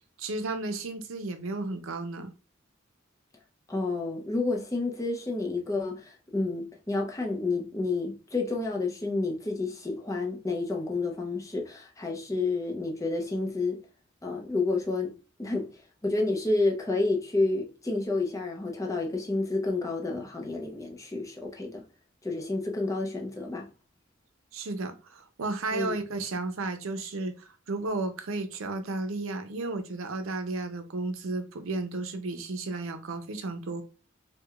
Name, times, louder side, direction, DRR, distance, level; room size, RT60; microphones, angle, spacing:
voice 1, 0.2-2.3 24.5-33.8, right 3 dB, 75° right, 0.6 m, -33 dB
voice 2, 3.7-13.8 14.2-15.1 15.4-15.6 16.0-21.8 22.2-23.7 25.7-25.9, left 3 dB, 15° left, 0.6 m, -30 dB
4.7 x 2.2 x 2.3 m
head